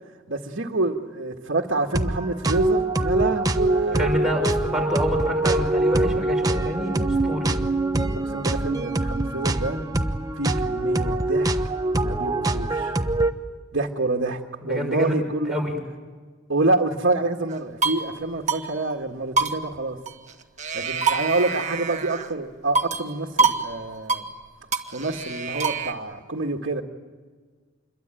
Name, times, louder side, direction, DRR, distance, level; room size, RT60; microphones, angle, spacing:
voice 1, 0.3-4.2 8.1-9.8 10.4-11.5 12.0-13.0 13.7-15.6 16.5-20.0 20.7-24.2 24.9-26.8, right 2 dB, 65° right, 1.8 m, -27 dB
sound 1, 1.9-13.3, right 2 dB, 20° right, 1.0 m, -24 dB
voice 2, 4.0-7.5 14.6-15.2 15.5-15.8, equal, ahead, 6.0 m, -27 dB
sound 2, 17.5-18.1 18.5-18.6 18.9-19.0 19.4-20.3 20.6-22.3 22.8-23.1 23.4-23.7 23.9-24.3 24.7-25.9, right 4 dB, 35° right, 1.9 m, -25 dB
27.5 x 22.5 x 9.1 m
head